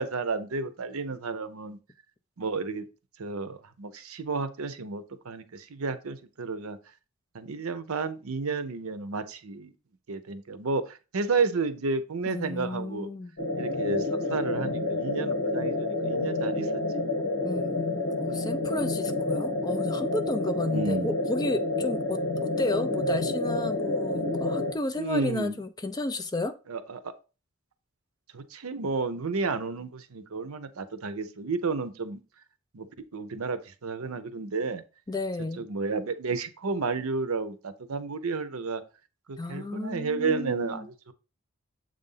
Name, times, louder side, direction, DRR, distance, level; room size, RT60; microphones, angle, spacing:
voice 1, 0.0-1.8 2.4-2.9 3.2-6.8 7.3-9.7 10.1-13.1 13.6-16.8 20.7-21.1 24.9-25.6 26.7-27.1 28.3-32.2 32.7-32.9 33.1-34.8 35.6-38.8 39.3-41.1, right 4 dB, 75° right, 0.7 m, -31 dB
voice 2, 12.3-13.3 17.4-26.6 35.1-35.6 39.4-40.9, left 2 dB, 20° left, 0.4 m, -32 dB
sound 1, 13.4-24.7, left 2 dB, 65° left, 1.7 m, -29 dB
7.4 x 2.6 x 5.5 m
head